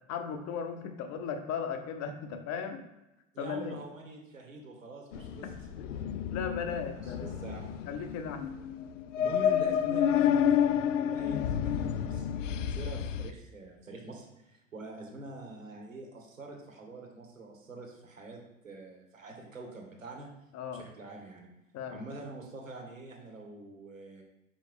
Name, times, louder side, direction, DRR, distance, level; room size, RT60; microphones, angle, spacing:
voice 1, 0.1-2.8 3.4-3.8 5.4-5.5 6.3-7.3 7.9-8.4 20.5-20.8 21.7-22.0, left 6 dB, 45° left, 7 dB, 1.0 m, -36 dB
voice 2, 3.3-5.5 7.0-7.8 9.2-12.3 12.7-20.3 20.7-21.5 21.9-24.2, right 2 dB, 85° right, 1 dB, 1.6 m, -45 dB
sound 1, 5.1-13.3, left 9 dB, 75° left, 0.5 m, -30 dB
5.4 x 5.0 x 3.7 m, 0.95 s
figure-of-eight pair, 75°, 38 cm